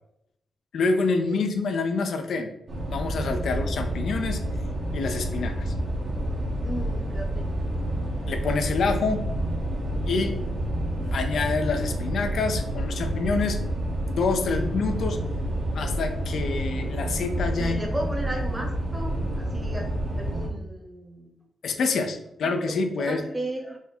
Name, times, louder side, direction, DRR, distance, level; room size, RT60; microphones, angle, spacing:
voice 1, 0.7-2.5 2.9-4.4 4.9-5.7 8.3-9.2 10.1-10.3 11.1-13.6 14.0-15.2 15.7-17.9 21.6-23.2, left 4 dB, 75° left, 6 dB, 0.5 m, -27 dB
sound 1, 2.7-20.5, right 1 dB, 55° right, 1.1 m, -29 dB
voice 2, 6.5-7.5 10.1-10.3 14.5-14.6 17.6-19.9 20.2-21.4 22.4-23.8, right 1 dB, 20° right, 1 dB, 1.0 m, -35 dB
3.6 x 2.2 x 4.2 m, 0.82 s
cardioid pair, 60°, 0 cm